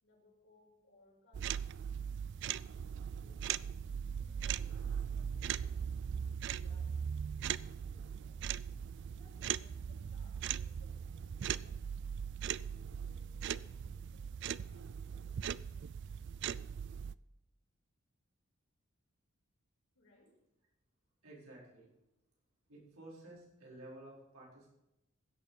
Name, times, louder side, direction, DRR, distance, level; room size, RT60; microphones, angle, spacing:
voice 1, 0.0-1.7 2.6-3.5 4.0-6.0 6.5-8.4 9.1-11.9 12.5-14.3 14.6-15.9 19.9-20.4, left 1 dB, 55° left, -3 dB, 5.3 m, -67 dB
sound 1, 1.3-17.1, right 8 dB, 55° right, 0.3 m, -39 dB
voice 2, 21.2-21.9 22.7-24.7, right 1 dB, 80° right, -4 dB, 4.5 m, -53 dB
16.0 x 6.8 x 5.4 m, 0.90 s
head